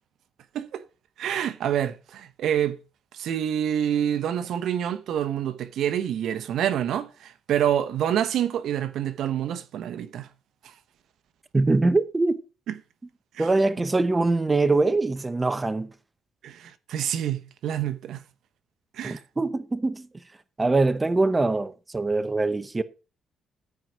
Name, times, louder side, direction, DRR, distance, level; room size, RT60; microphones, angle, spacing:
voice 1, 1.2-2.8 3.1-10.3 10.6-10.7 12.7-12.8 13.3-13.5 16.4-18.2 18.9-19.2, right 10 dB, 75° right, 0.9 m, -27 dB
voice 2, 11.5-12.4 13.4-15.9 19.0-20.1 20.6-22.8, right 3 dB, 20° right, 0.9 m, -23 dB
13.5 x 4.7 x 6.2 m
cardioid pair, 90°, 0 cm